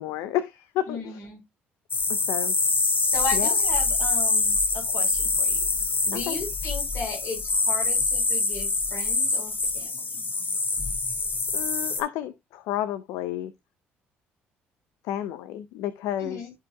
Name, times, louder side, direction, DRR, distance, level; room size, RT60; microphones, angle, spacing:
voice 1, 0.0-1.2 2.3-2.5 3.3-3.5 6.1-6.4 11.5-13.5 15.1-16.4, left 12 dB, 80° left, 0.6 m, -31 dB
voice 2, 0.9-1.4 3.0-5.7 6.1-10.2 16.2-16.5, left 4 dB, 60° left, 4.6 m, -36 dB
sound 1, 1.9-12.0, left 3 dB, 40° left, 2.7 m, -25 dB
13.5 x 4.9 x 2.3 m
hypercardioid pair, 55°, 5 cm